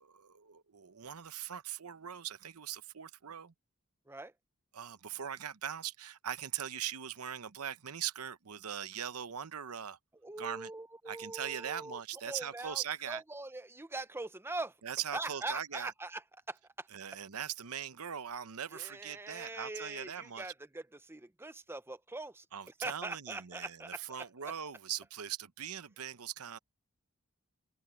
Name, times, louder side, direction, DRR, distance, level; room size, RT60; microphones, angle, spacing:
voice 1, 0.0-3.5 4.7-10.0 10.4-10.7 11.1-13.2 14.8-15.9 16.9-20.5 22.5-26.6, right 9 dB, 90° right, 0.8 m, -41 dB
voice 2, 10.2-12.0 12.3-14.7 15.1-16.9 18.7-22.4 22.8-24.3, right 2 dB, 10° right, 0.7 m, -42 dB
open air
head